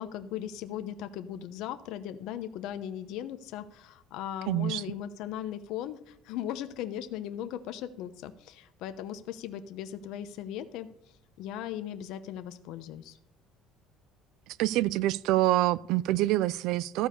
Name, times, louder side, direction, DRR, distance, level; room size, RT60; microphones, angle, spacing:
voice 1, 0.0-10.9 11.4-13.2, left 10 dB, 75° left, 0.9 m, -38 dB
voice 2, 4.5-4.8 14.6-17.1, right 15 dB, 75° right, 0.4 m, -26 dB
14.0 x 4.8 x 6.7 m
cardioid pair, 125°, 0 cm